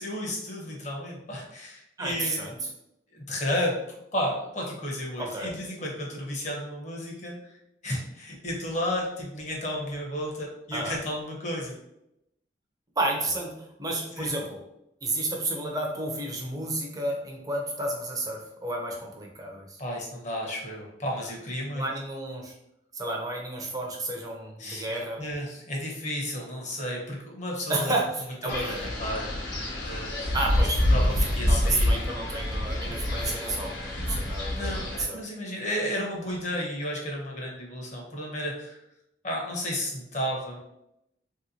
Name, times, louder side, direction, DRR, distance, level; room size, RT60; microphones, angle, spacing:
voice 1, 0.0-2.4 3.1-7.6 7.8-11.7 14.2-14.3 19.8-21.8 24.6-27.9 28.4-29.3 29.8-30.3 30.9-32.0 34.4-38.8 39.2-40.6, equal, 40° left, -2 dB, 0.8 m, -33 dB
voice 2, 2.0-2.7 5.2-5.6 10.7-11.0 13.0-14.6 15.0-19.8 21.7-22.5 22.9-25.2 27.7-28.9 30.3-35.2, right 2 dB, 20° right, 0 dB, 0.5 m, -31 dB
Wind, 28.5-35.0, left 1 dB, 80° left, 1.2 m, -27 dB
3.0 x 2.8 x 2.7 m, 0.83 s
head